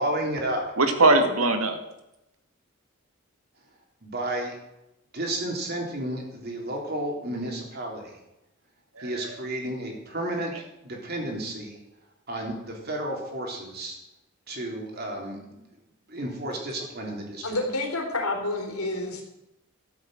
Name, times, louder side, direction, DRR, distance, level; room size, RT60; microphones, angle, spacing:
voice 1, 0.0-0.6 4.0-4.6 5.1-8.1 9.0-11.8 12.3-14.0 14.5-15.6 16.1-17.6, right 1 dB, 45° right, 1 dB, 3.6 m, -32 dB
voice 2, 0.8-1.8 9.0-9.3, right 2 dB, 80° right, 6 dB, 1.9 m, -21 dB
voice 3, 17.4-19.2, left 2 dB, 85° left, 1 dB, 3.7 m, -29 dB
13.0 x 8.5 x 7.9 m, 0.90 s
head